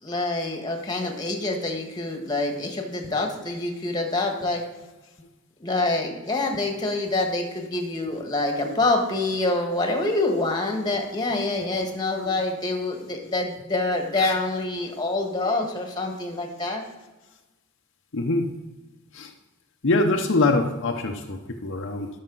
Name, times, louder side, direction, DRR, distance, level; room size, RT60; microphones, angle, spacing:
voice 1, 0.0-4.6 5.6-16.8, left 2 dB, 20° left, 3 dB, 1.5 m, -26 dB
voice 2, 18.1-18.6 19.1-19.3 19.8-22.1, left 2 dB, 60° left, 2 dB, 0.8 m, -24 dB
12.0 x 6.6 x 4.0 m, 1.1 s
head